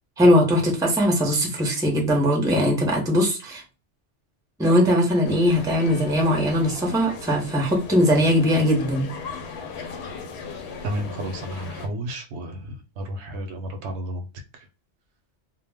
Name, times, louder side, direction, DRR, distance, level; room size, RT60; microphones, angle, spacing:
voice 1, 0.2-3.6 4.6-9.1, equal, 5° right, -1 dB, 0.5 m, -20 dB
sound 1, 5.2-11.9, left 5 dB, 70° left, 0.8 m, -37 dB
voice 2, 10.8-14.2 14.5-14.7, right 1 dB, 75° right, 6 dB, 0.8 m, -32 dB
2.1 x 2.1 x 3.3 m, 0.31 s
omnidirectional pair, 1.2 m